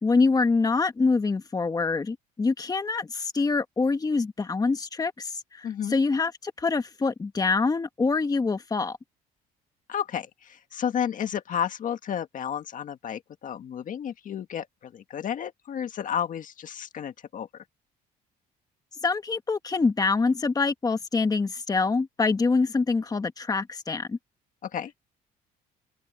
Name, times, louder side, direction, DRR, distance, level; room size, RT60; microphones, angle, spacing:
voice 1, 0.0-9.0 19.0-24.2, left 4 dB, 20° left, 1.7 m, -25 dB
voice 2, 5.6-6.0 9.9-17.6 24.6-24.9, left 9 dB, 50° left, 1.7 m, -32 dB
open air
cardioid pair, 110°, 17 cm